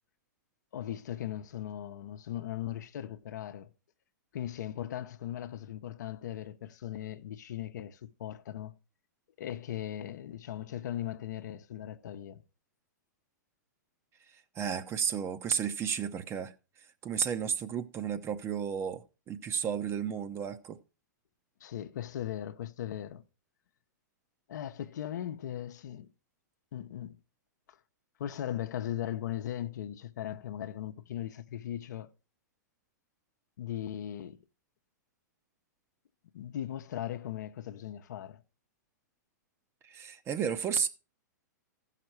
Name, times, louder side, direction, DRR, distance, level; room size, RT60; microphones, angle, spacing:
voice 1, 0.7-3.7 4.3-8.7 9.4-12.4 21.6-23.2 24.5-26.1 26.7-27.1 27.7-27.8 28.2-32.1 33.6-34.4 36.3-38.4, left 11 dB, 70° left, 0.8 m, -38 dB
voice 2, 14.6-16.5 17.0-20.8 39.8-40.9, right 7 dB, 25° right, 0.8 m, -33 dB
14.5 x 5.8 x 4.5 m
hypercardioid pair, 120°, 10 cm